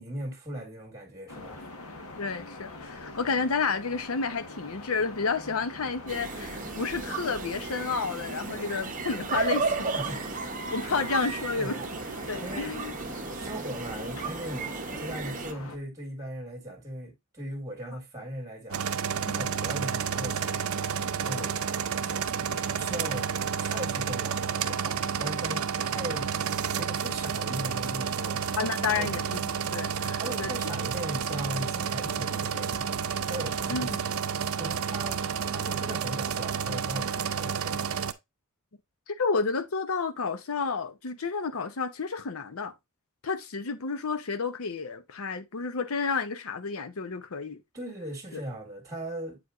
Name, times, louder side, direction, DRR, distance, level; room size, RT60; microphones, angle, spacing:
voice 1, 0.0-1.7 9.8-10.2 10.9-11.0 11.6-11.8 12.4-12.7 13.4-18.9 19.3-20.7 21.2-21.5 22.0-23.3 23.6-26.3 26.8-28.4 28.9-29.1 30.0-32.9 33.3-33.9 34.6-37.9 47.7-49.4, right 1 dB, 15° right, 1.7 m, -38 dB
sound 1, 1.3-15.8, left 2 dB, 90° left, 1.4 m, -43 dB
voice 2, 2.2-10.2 10.7-11.8 12.3-12.9 19.3-19.4 21.3-21.6 28.6-30.5 33.7-34.0 39.1-42.7 43.2-47.6 48.3-48.4, left 4 dB, 70° left, 0.8 m, -31 dB
sound 2, 6.1-15.5, right 4 dB, 40° right, 0.7 m, -34 dB
sound 3, 18.7-38.1, right 7 dB, 70° right, 0.6 m, -30 dB
8.0 x 4.8 x 2.5 m
head